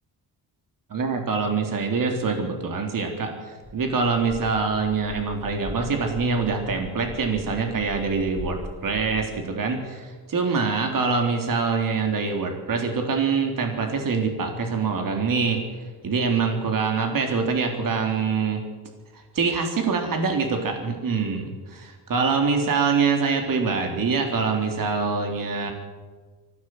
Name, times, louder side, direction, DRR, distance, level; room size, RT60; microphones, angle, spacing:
voice 1, 0.9-15.6 16.0-18.6 19.3-25.7, right 4 dB, 55° right, 4 dB, 3.6 m, -25 dB
sound 1, 3.6-9.2, left 1 dB, ahead, 4.9 m, -40 dB
24.5 x 16.0 x 7.9 m, 1.4 s
cardioid pair, 105°, 39 cm